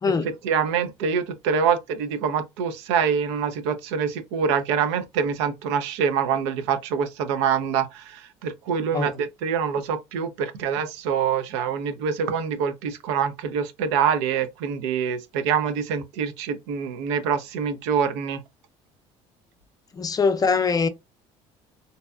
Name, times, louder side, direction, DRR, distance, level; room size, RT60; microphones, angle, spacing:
voice 1, 0.4-18.4, right 7 dB, 90° right, 0.4 m, -25 dB
voice 2, 19.9-20.9, left 5 dB, 25° left, 0.4 m, -22 dB
2.6 x 2.2 x 2.2 m
supercardioid pair, 80°, 15 cm